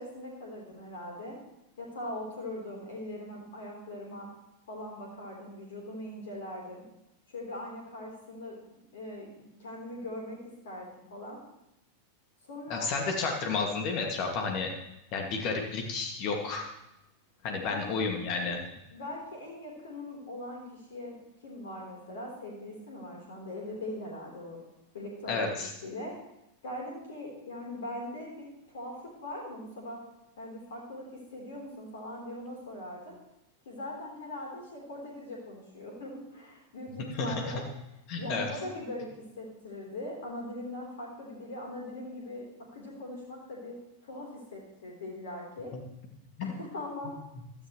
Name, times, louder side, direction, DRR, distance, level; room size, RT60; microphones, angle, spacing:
voice 1, 0.0-1.4 1.8-4.3 4.7-6.8 7.3-11.4 12.4-12.9 17.5-18.1 18.9-21.2 21.4-24.6 24.9-25.6 25.8-26.1 26.6-28.3 28.7-30.0 30.4-33.1 33.7-37.6 38.2-42.5 42.7-43.8 44.0-45.7 46.4-47.1, left 1 dB, 60° left, -2 dB, 3.9 m, -41 dB
voice 2, 12.7-14.7 15.1-16.7 17.4-18.6 25.3-25.7 37.1-37.5 38.1-38.5 45.7-45.8 46.4-46.5, left 4 dB, 40° left, 2 dB, 2.2 m, -31 dB
16.5 x 13.0 x 3.2 m, 0.86 s
figure-of-eight pair, 90°, 0 cm